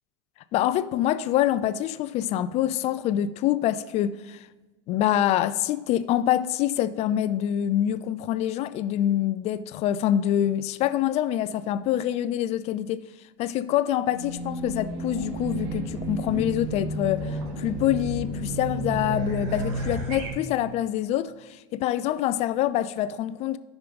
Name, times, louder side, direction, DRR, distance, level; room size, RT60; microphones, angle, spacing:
voice 1, 0.5-4.5 4.9-13.0 13.4-23.6, left 11 dB, 45° left, 0.4 m, -25 dB
Race car auto racing / Alarm, 14.1-20.3, right 1 dB, 65° right, 3.0 m, -32 dB
9.9 x 6.1 x 5.2 m
hypercardioid pair, 105°, 15 cm